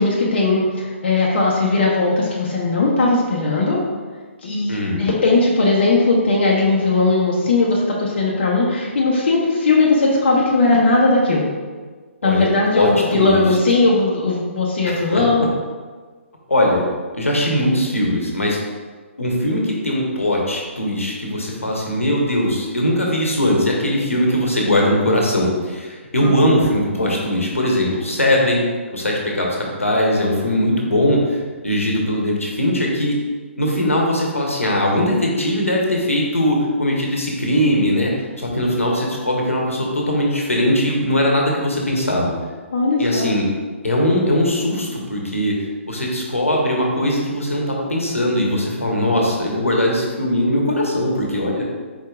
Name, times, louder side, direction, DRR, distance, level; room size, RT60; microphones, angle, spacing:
voice 1, 0.0-3.8 4.4-11.5 12.2-15.4 26.2-26.6 42.7-43.3, left 3 dB, 50° left, -3 dB, 0.7 m, -18 dB
voice 2, 4.7-5.1 12.2-13.4 14.8-15.2 16.5-16.8 17.1-18.6 19.2-28.6 28.9-33.2 33.6-38.1 38.4-42.3 43.0-43.5 43.8-45.6 45.9-51.7, left 1 dB, 80° left, -1 dB, 1.0 m, -20 dB
4.5 x 4.4 x 2.4 m, 1.4 s
figure-of-eight pair, 135°, 7 cm